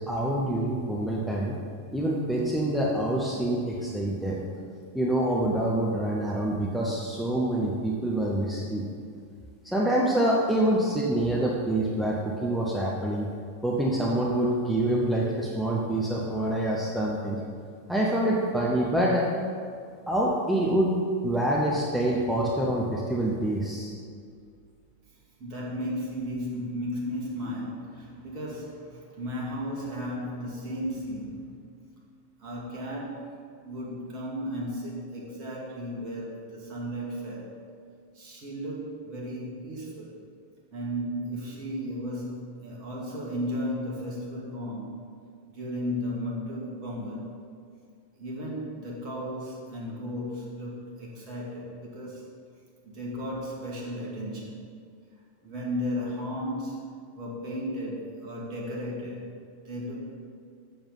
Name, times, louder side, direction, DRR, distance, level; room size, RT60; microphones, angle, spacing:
voice 1, 0.1-1.6 1.9-4.4 4.9-8.8 9.6-13.3 13.6-17.4 17.9-19.3 20.1-21.0 21.2-23.9, right 1 dB, ahead, -4 dB, 1.0 m, -26 dB
voice 2, 25.4-31.5 32.4-37.5 38.1-40.2 40.7-44.9 45.5-47.3 48.2-52.3 52.8-54.6 55.4-59.3 59.6-60.2, equal, 40° right, -4 dB, 2.5 m, -35 dB
7.1 x 7.0 x 5.8 m, 2.2 s
figure-of-eight pair, 90°, 0 cm